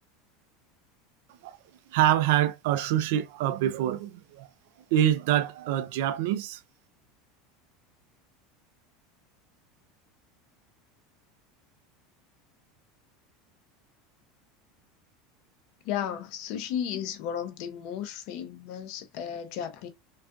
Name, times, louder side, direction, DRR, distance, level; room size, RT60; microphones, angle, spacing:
voice 1, 1.9-4.5 4.9-6.6, right 12 dB, 70° right, 0.3 m, -25 dB
voice 2, 15.8-19.9, left 9 dB, 65° left, 0.6 m, -34 dB
2.5 x 2.3 x 2.3 m
hypercardioid pair, 85°, 0 cm